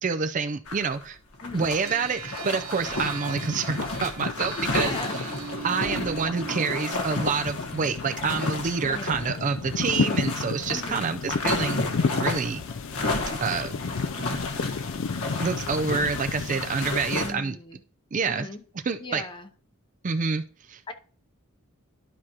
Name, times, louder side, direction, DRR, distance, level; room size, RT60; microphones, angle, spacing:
voice 1, 0.0-1.2 1.5-4.9 5.6-12.6 13.4-13.7 15.4-17.6 18.1-18.5 18.9-19.2 20.0-20.4 20.7-20.9, right 5 dB, 35° right, 0.4 m, -27 dB
sound 1, 0.7-1.0 1.3-17.3, left 2 dB, 90° left, 1.4 m, -32 dB
sound 2, 1.8-6.9, right 6 dB, 70° right, 1.0 m, -40 dB
sound 3, 2.0-2.6 2.9-17.1, left 5 dB, 60° left, 0.4 m, -33 dB
voice 2, 4.5-5.7 8.8-9.6 10.7-11.0 17.2-17.8 18.3-18.6 19.0-19.5 20.9-21.0, left 2 dB, 25° left, 0.7 m, -39 dB
12.0 x 4.8 x 2.9 m
head